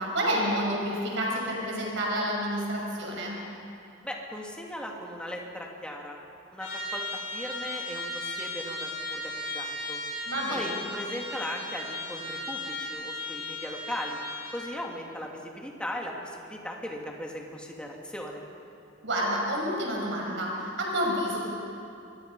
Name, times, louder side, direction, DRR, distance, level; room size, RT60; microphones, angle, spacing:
voice 1, 0.0-3.4 10.3-10.8 19.0-21.4, equal, 70° right, -2 dB, 5.9 m, -29 dB
voice 2, 4.0-6.2 6.5-10.0 10.5-14.2 14.5-18.4, equal, 5° left, -1 dB, 2.7 m, -38 dB
Trumpet, 6.6-14.7, left 2 dB, 85° left, 6.6 m, -36 dB
26.0 x 22.0 x 5.6 m, 2.6 s
head